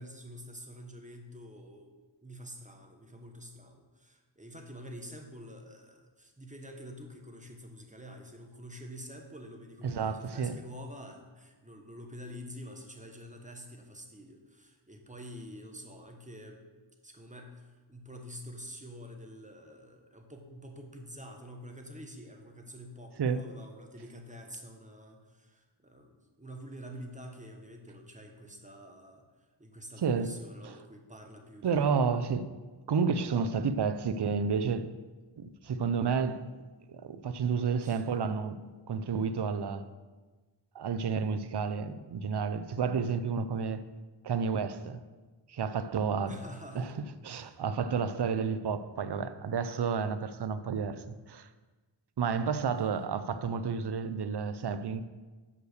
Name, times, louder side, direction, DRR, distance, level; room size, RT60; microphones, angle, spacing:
voice 1, 0.0-16.6 17.0-32.2 37.8-38.0 46.3-46.9 47.3-47.6, equal, 15° right, 1.2 m, -47 dB
voice 2, 9.8-10.6 23.2-23.4 30.0-30.4 30.6-30.7 31.6-32.5 32.9-34.9 35.4-36.4 36.9-38.6 38.9-39.9 40.7-43.8 44.2-45.0 45.5-46.4 46.7-46.9 47.2-51.0 51.3-51.5 52.2-55.0, right 6 dB, 60° right, 0.6 m, -30 dB
6.5 x 5.5 x 6.4 m
wide cardioid pair, 60°, 47 cm